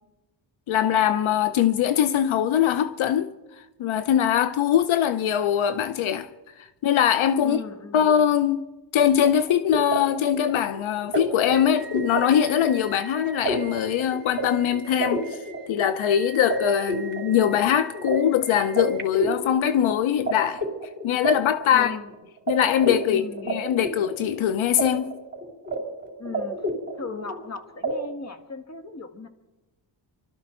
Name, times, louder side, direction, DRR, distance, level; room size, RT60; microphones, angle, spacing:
voice 1, 0.7-3.3 3.8-6.3 6.8-7.6 7.9-8.6 8.9-15.4 15.7-20.6 21.0-22.0 22.5-25.1, left 9 dB, 80° left, 0.8 m, -22 dB
voice 2, 7.4-8.1 21.7-22.1 23.1-23.5 26.2-26.7 26.9-29.3, left 4 dB, 35° left, 1.7 m, -37 dB
sound 1, 9.2-20.3 20.6-22.1 22.5-22.6 22.8-24.8 25.1-25.8 26.0-27.4 27.8-27.9, right 2 dB, 20° right, 3.8 m, -31 dB
24.5 x 13.0 x 4.4 m
cardioid pair, 80°, 47 cm